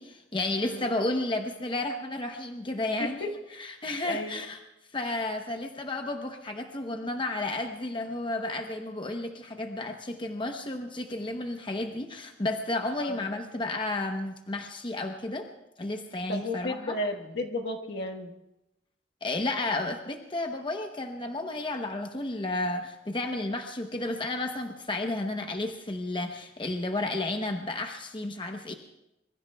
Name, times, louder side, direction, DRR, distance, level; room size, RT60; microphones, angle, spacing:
voice 1, 0.0-3.3 3.6-4.6 4.9-15.5 15.8-17.0 19.2-28.7, left 2 dB, 25° left, 4 dB, 0.9 m, -32 dB
voice 2, 3.0-3.3 4.0-4.4 13.0-13.2 16.3-18.3, left 1 dB, 65° left, 2 dB, 1.4 m, -33 dB
25.0 x 22.5 x 2.3 m, 0.91 s
head